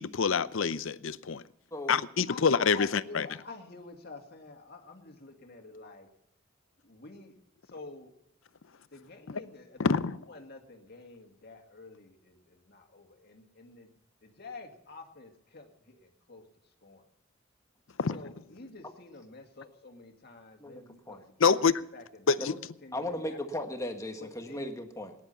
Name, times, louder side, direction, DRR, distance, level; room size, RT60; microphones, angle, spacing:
voice 1, 0.0-1.4 1.9-3.3 9.8-10.2 18.0-18.2 21.4-21.7 22.3-22.5, left 5 dB, 75° left, 0.6 m, -26 dB
voice 2, 2.3-6.1 6.8-7.4 7.6-8.1 8.9-13.9 14.2-17.1 18.1-21.2 21.5-21.7 21.9-22.4 22.8-23.4 24.2-24.7, left 3 dB, 55° left, 2.2 m, -48 dB
voice 3, 20.6-21.2 22.4-22.6 22.9-25.1, left 1 dB, 15° left, 1.5 m, -37 dB
18.5 x 10.5 x 5.7 m
head